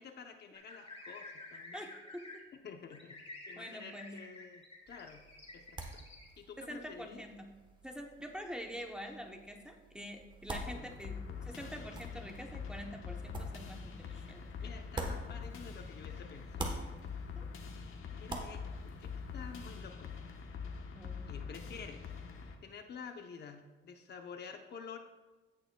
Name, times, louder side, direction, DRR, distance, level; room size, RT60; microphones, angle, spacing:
voice 1, 0.0-1.9 2.6-3.2 3.5-5.3 5.5-6.1 6.4-7.3 10.5-10.9 11.3-12.0 14.6-16.8 18.1-20.2 21.3-22.1 22.6-25.0, left 6 dB, 50° left, 5 dB, 0.7 m, -50 dB
sound 1, 0.5-2.4 2.9-6.3, left 2 dB, 30° left, 2.1 m, -50 dB
voice 2, 1.7-2.4 3.6-4.2 6.6-7.6 7.8-14.7 17.4-17.5 20.9-21.3, equal, 5° right, 2 dB, 0.8 m, -46 dB
sound 2, 4.9-16.0 16.3-19.8, right 2 dB, 20° right, 1.1 m, -47 dB
sound 3, 10.5-22.5, left 5 dB, 75° left, 1.0 m, -44 dB
16.5 x 6.7 x 2.2 m, 1.2 s
cardioid pair, 135°, 21 cm